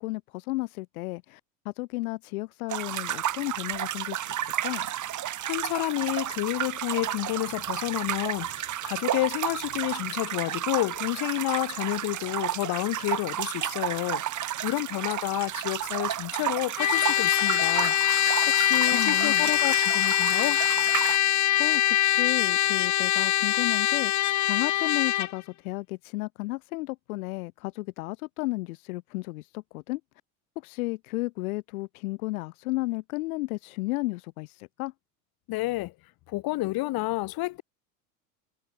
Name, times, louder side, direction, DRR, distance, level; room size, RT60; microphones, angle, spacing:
voice 1, 0.0-1.4 1.6-4.9 18.9-19.5 21.6-30.0 30.6-34.9, left 22 dB, 85° left, 1.1 m, -33 dB
sound 1, 2.7-21.2, right 12 dB, 45° right, 3.5 m, -32 dB
voice 2, 5.4-14.2 14.6-20.6 35.5-35.9 36.3-37.6, left 20 dB, 55° left, 2.0 m, -30 dB
Trumpet, 16.8-25.3, left 13 dB, 40° left, 1.3 m, -23 dB
supercardioid pair, 100°, 42 cm